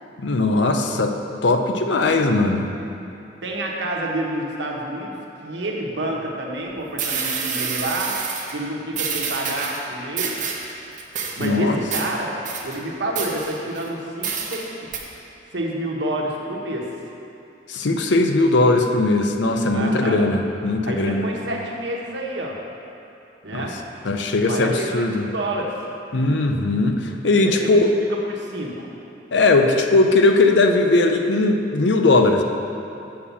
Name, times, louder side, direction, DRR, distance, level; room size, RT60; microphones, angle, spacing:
voice 1, 0.2-1.2 1.4-2.7 11.4-11.8 17.7-21.3 23.5-23.6 24.0-25.2 26.1-27.8 29.3-32.4, left 2 dB, 70° left, 5 dB, 0.6 m, -19 dB
voice 2, 3.4-5.1 5.4-8.2 8.5-10.4 11.4-12.3 12.6-14.7 15.5-16.9 19.7-20.2 20.9-22.6 23.4-23.8 24.5-25.7 27.5-27.8 28.1-28.7, right 1 dB, 70° right, -1 dB, 1.1 m, -28 dB
sound 1, 6.6-6.7 7.0-8.5 8.9-9.8 10.2-10.7 11.0-11.5 11.9-12.1 12.4-12.8 13.2-13.9 14.2-14.7 14.9-15.0, right 6 dB, 45° right, 0.9 m, -28 dB
6.6 x 5.5 x 7.1 m, 2.8 s
head